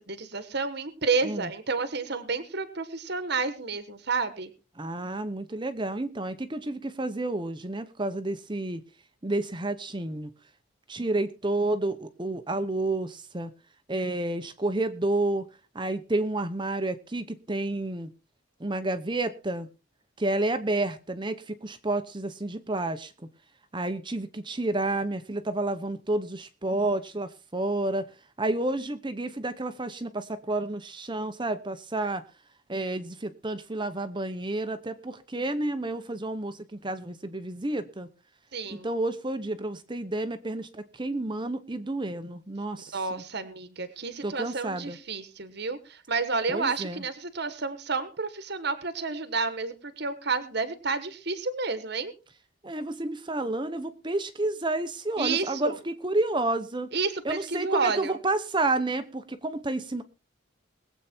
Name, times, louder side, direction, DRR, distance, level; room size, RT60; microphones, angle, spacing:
voice 1, 0.0-4.5 38.5-38.9 42.9-52.1 55.2-55.7 56.9-58.2, right 4 dB, 50° right, 11 dB, 1.3 m, -30 dB
voice 2, 4.8-8.8 9.2-10.3 10.9-13.5 13.9-15.5 15.7-18.1 18.6-19.7 20.2-23.1 23.7-28.1 28.4-32.2 32.7-38.1 38.7-43.2 44.2-45.0 46.5-47.0 52.6-56.9 57.2-60.0, right 2 dB, 20° right, 11 dB, 0.9 m, -30 dB
20.5 x 8.3 x 4.4 m, 0.34 s
head